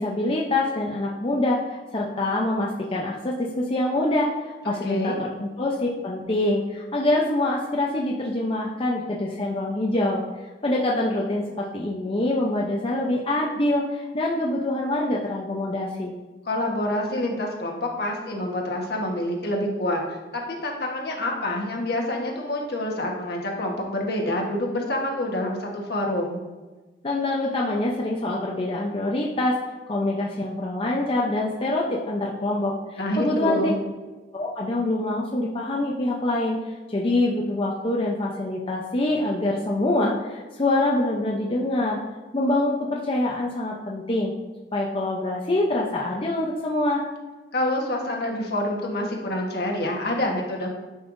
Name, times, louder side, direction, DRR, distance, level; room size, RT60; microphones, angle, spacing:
voice 1, 0.0-10.2 10.6-16.1 27.0-29.6 29.9-33.7 34.3-36.6 36.9-42.0 42.3-44.3 44.7-47.0, left 1 dB, 30° left, -3 dB, 0.7 m, -25 dB
voice 2, 4.6-5.2 16.4-26.4 33.0-33.8 47.5-50.7, left 1 dB, 60° left, 0 dB, 1.3 m, -27 dB
10.0 x 5.5 x 2.6 m, 1.2 s
head